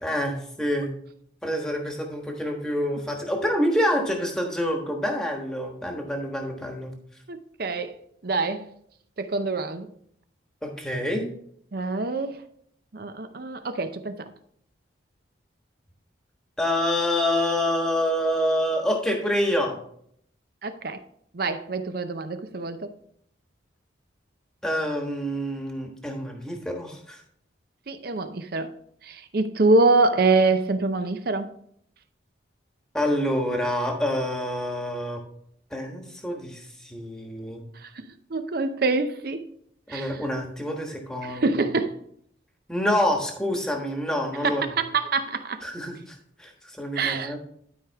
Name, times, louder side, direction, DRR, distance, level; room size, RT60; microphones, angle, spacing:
voice 1, 0.0-0.9 1.4-6.9 10.6-11.2 16.6-19.8 24.6-27.2 32.9-35.2 35.7-37.6 39.9-41.5 42.7-44.7 45.6-47.4, equal, 5° left, 1.3 m, -27 dB
voice 2, 7.3-8.0 8.2-8.7 9.2-9.9 11.7-12.4 12.9-14.3 20.6-21.0 21.3-22.9 27.9-28.7 29.0-31.5 37.8-39.5 39.9-40.1 41.2-42.0 44.4-45.6 46.9-47.4, right 3 dB, 50° right, 0.6 m, -25 dB
12.0 x 4.9 x 3.5 m
head